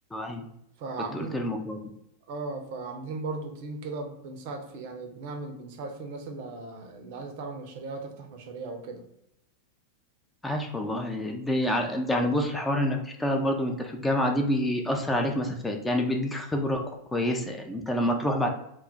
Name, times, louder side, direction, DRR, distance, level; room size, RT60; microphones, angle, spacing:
voice 1, 0.1-0.5 1.1-1.8 10.4-16.8 17.1-18.5, left 1 dB, 10° left, 3 dB, 0.3 m, -27 dB
voice 2, 0.8-1.5 2.3-9.0, right 3 dB, 50° right, 4 dB, 0.5 m, -37 dB
2.2 x 2.0 x 3.8 m, 0.80 s
figure-of-eight pair, 90°, 0 cm